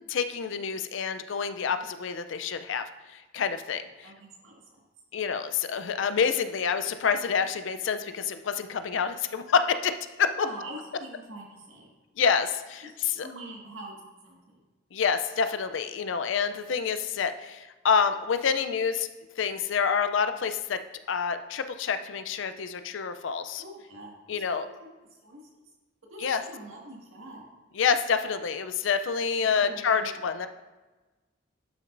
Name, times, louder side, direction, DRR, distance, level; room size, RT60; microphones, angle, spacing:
voice 1, 0.1-4.1 5.1-10.5 12.2-13.3 14.9-19.1 19.4-20.8 21.1-23.6 24.3-24.7 26.2-26.4 27.8-30.5, left 6 dB, 75° left, 10 dB, 0.4 m, -27 dB
voice 2, 4.0-4.8 10.4-11.9 12.8-14.0 14.2-14.6 23.6-24.6 25.2-25.4 26.1-27.4 29.4-30.2, right 1 dB, 90° right, -2 dB, 1.8 m, -44 dB
11.5 x 6.1 x 2.5 m, 1.2 s
head